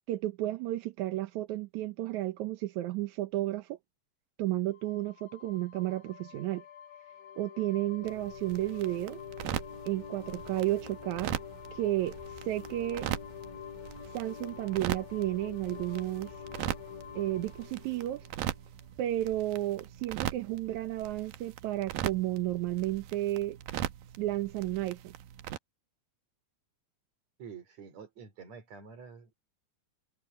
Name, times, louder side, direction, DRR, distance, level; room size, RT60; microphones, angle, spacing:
voice 1, 0.1-3.8 4.4-6.7 7.4-9.2 9.9-11.4 11.7-13.1 14.1-16.4 17.2-18.3 19.0-23.6 24.2-25.1, right 15 dB, 70° right, 2.1 m, -32 dB
sound 1, 4.7-19.2, left 10 dB, 85° left, 3.6 m, -47 dB
sound 2, 8.0-25.6, right 12 dB, 90° right, 2.7 m, -40 dB
voice 2, 27.4-29.3, right 6 dB, 55° right, 4.0 m, -48 dB
omnidirectional pair, 3.9 m